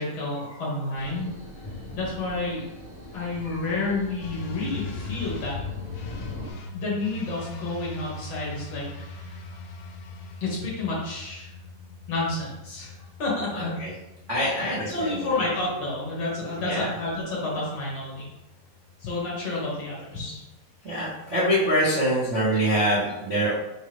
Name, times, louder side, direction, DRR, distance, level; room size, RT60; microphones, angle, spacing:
voice 1, 0.0-1.3 1.9-2.7 3.1-5.6 6.7-9.4 10.4-11.5 12.1-13.7 14.5-18.3 19.0-20.4, left 2 dB, 45° left, -6 dB, 2.4 m, -30 dB
sound 1, 0.9-6.5, left 1 dB, 20° left, 0.9 m, -40 dB
sound 2, 4.2-21.7, left 3 dB, 75° left, 2.2 m, -42 dB
voice 2, 13.5-13.9 14.3-15.3 16.6-16.9 20.1-20.2 20.8-23.6, equal, 75° right, -9 dB, 0.6 m, -25 dB
6.3 x 5.4 x 3.5 m, 0.95 s
omnidirectional pair, 5.0 m